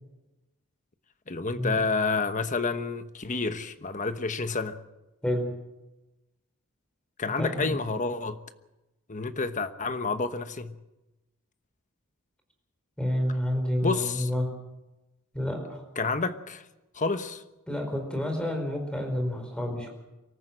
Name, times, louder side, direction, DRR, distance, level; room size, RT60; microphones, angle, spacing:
voice 1, 1.3-4.8 7.2-8.4 9.1-10.7 13.8-14.3 16.0-16.6 16.9-17.4, left 4 dB, 35° left, 1.1 m, -29 dB
voice 2, 5.2-5.5 7.4-7.8 13.0-14.5 15.3-15.8 17.7-19.9, left 1 dB, 5° left, 4.7 m, -29 dB
24.5 x 14.0 x 7.8 m
head